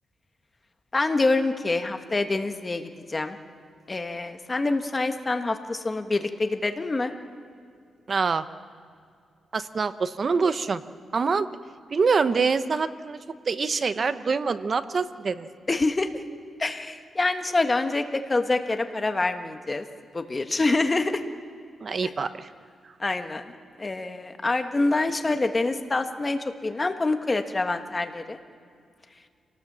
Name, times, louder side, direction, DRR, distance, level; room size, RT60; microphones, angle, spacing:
voice 1, 0.9-3.4 3.9-7.1 15.7-16.1 16.6-19.9 20.1-21.2 22.0-22.1 23.0-23.5 23.8-28.4, left 3 dB, 25° left, 7 dB, 1.3 m, -26 dB
voice 2, 8.1-8.4 9.5-10.8 11.1-11.5 11.9-13.2 13.5-15.5 21.8-22.5, right 5 dB, 40° right, 12 dB, 0.8 m, -25 dB
26.0 x 18.5 x 7.4 m, 2.3 s
wide cardioid pair, 125°, 0 cm